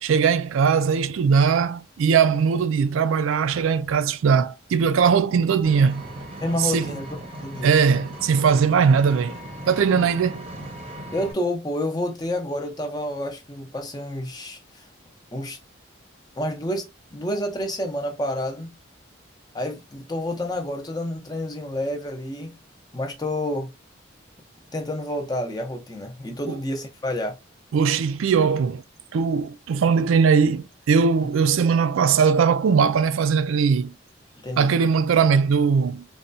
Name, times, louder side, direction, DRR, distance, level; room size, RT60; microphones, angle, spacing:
voice 1, 0.0-6.0 6.6-6.9 7.6-9.3 9.7-10.5 26.5-26.6 27.7-28.8 29.1-33.9 34.6-36.0, right 6 dB, 85° right, 0.3 m, -20 dB
Vehicle, 5.6-11.3, right 1 dB, 30° right, 0.7 m, -37 dB
voice 2, 6.4-7.7 9.9-10.1 11.1-14.9 15.3-15.6 16.4-18.7 19.5-22.5 22.9-23.7 24.7-27.4 34.4-34.7, left 1 dB, 20° left, 0.5 m, -29 dB
4.2 x 2.2 x 2.5 m
head